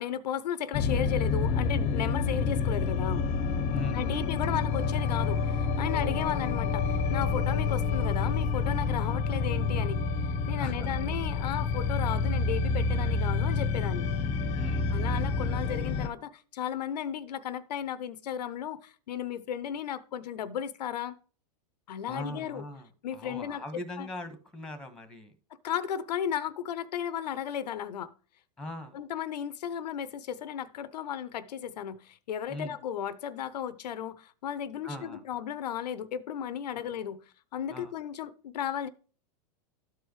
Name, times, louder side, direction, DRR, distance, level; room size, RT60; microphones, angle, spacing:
voice 1, 0.0-3.3 3.9-10.0 10.5-14.1 14.9-21.2 21.9-22.6 23.0-23.6 24.0-24.1 25.6-28.1 28.9-38.9, left 9 dB, 80° left, 0.6 m, -35 dB
sound 1, 0.7-16.1, left 4 dB, 35° left, 0.8 m, -28 dB
voice 2, 3.7-4.3 10.6-10.7 14.5-14.9 22.1-25.3 28.6-29.0 32.5-32.8 34.8-35.2 36.7-36.9 37.7-37.9, left 1 dB, 5° left, 1.3 m, -40 dB
12.5 x 4.7 x 3.1 m
hypercardioid pair, 120°, 21 cm